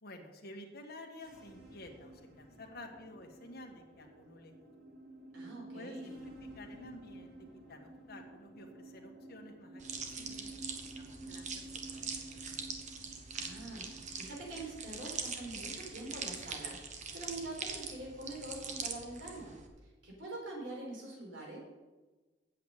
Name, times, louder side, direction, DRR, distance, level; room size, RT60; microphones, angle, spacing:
voice 1, 0.0-4.7 5.7-7.3 7.7-9.8 10.2-11.6 11.9-12.7, left 1 dB, 55° left, 2 dB, 1.7 m, -51 dB
sound 1, 1.1-16.6, right 2 dB, 60° right, 2.3 m, -52 dB
voice 2, 5.3-6.2 13.3-19.5 19.8-21.6, right 2 dB, 80° right, -2 dB, 4.5 m, -45 dB
sound 2, 9.8-19.7, right 5 dB, 40° right, 1.2 m, -43 dB
8.5 x 7.3 x 8.1 m, 1.2 s
head